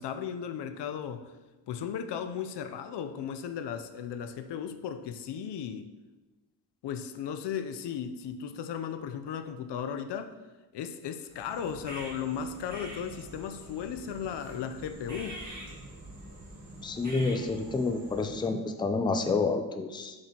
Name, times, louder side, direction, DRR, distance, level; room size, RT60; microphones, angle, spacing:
voice 1, 0.0-1.3 1.7-5.9 6.8-10.3 10.7-15.4, left 8 dB, 75° left, 9 dB, 0.6 m, -36 dB
sound 1, 11.3-18.5, right 1 dB, 40° right, 1.6 m, -45 dB
voice 2, 16.8-20.1, left 3 dB, 10° left, 7 dB, 0.4 m, -29 dB
6.4 x 6.1 x 2.9 m, 1.1 s
cardioid pair, 100°, 43 cm